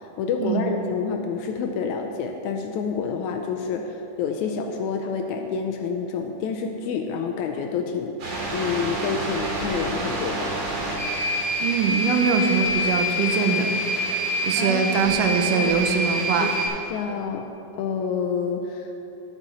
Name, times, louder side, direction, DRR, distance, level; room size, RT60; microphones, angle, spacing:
voice 1, 0.2-8.2 8.5-10.5 14.6-15.2 15.5-15.7 16.4-16.5 16.9-17.5 17.8-18.9, left 5 dB, 80° left, 4 dB, 1.8 m, -28 dB
sound 1, 8.2-16.7, equal, 55° right, 2.8 m, -26 dB
voice 2, 11.6-13.7 14.4-16.5, right 6 dB, 80° right, 5 dB, 2.3 m, -23 dB
12.0 x 8.1 x 4.2 m, 2.9 s
omnidirectional pair, 3.7 m